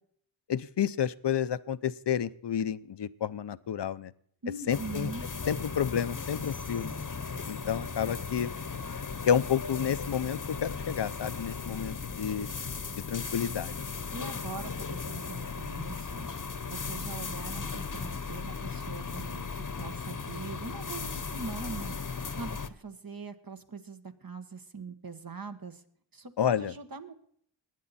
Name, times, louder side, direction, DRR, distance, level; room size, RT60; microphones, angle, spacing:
voice 1, 0.5-4.1 4.7-5.1 5.5-6.9 7.5-8.5 9.3-12.5 13.1-13.7 26.4-26.7, left 8 dB, 65° left, 15 dB, 0.7 m, -30 dB
voice 2, 4.4-5.3 14.1-16.3 16.7-22.0 22.3-25.8 26.1-27.1, right 4 dB, 50° right, 8 dB, 1.3 m, -42 dB
sound 1, 4.7-22.7, left 5 dB, 45° left, 1.0 m, -37 dB
20.0 x 9.2 x 4.2 m, 0.64 s
wide cardioid pair, 70°, 45 cm